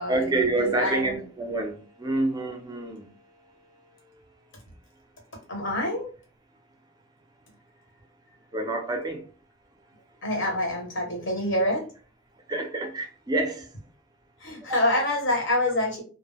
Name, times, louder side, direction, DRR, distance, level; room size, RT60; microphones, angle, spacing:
voice 1, 0.1-3.1 8.5-9.2 12.5-13.7 14.7-14.8, right 2 dB, 20° right, 4 dB, 0.5 m, -27 dB
voice 2, 0.6-1.2 5.5-6.1 10.2-11.8 14.4-16.0, left 1 dB, 70° left, 0 dB, 1.1 m, -26 dB
2.2 x 2.0 x 3.4 m, 0.37 s
head